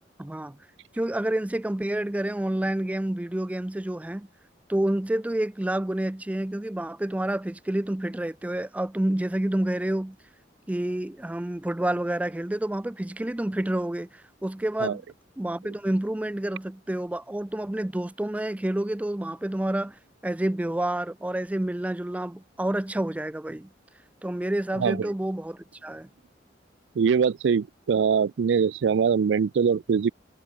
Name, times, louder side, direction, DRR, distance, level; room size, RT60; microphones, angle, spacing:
voice 1, 0.2-0.6 0.9-4.3 4.7-10.2 10.7-15.0 15.4-23.7 24.2-26.1, right 1 dB, 10° right, 0.3 m, -29 dB
voice 2, 24.8-25.1 27.0-30.1, right 6 dB, 80° right, 0.4 m, -23 dB
head